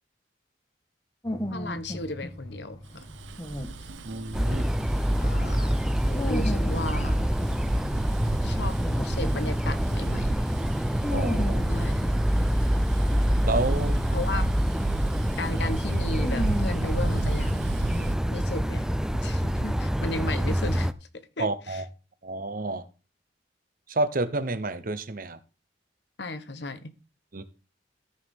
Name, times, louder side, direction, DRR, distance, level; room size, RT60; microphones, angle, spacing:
sound 1, 1.2-9.8 10.3-18.8, equal, 20° left, 1.5 m, -36 dB
voice 1, 1.5-3.0 5.2-5.7 6.3-7.2 8.4-8.8 9.0-10.4 11.7-12.1 14.1-14.5 15.4-17.8 18.3-18.9 19.1-21.8 26.2-26.9, left 2 dB, 65° left, 1.2 m, -35 dB
Bus, 3.0-18.2, right 2 dB, 90° right, 0.8 m, -34 dB
voice 2, 4.0-4.7 11.1-11.6 13.4-14.0 21.4-21.8 22.2-22.9 23.9-25.4 27.3-27.4, right 2 dB, 50° right, 0.9 m, -29 dB
sound 2, 4.3-20.9, equal, 5° right, 0.5 m, -26 dB
14.0 x 6.5 x 3.7 m
head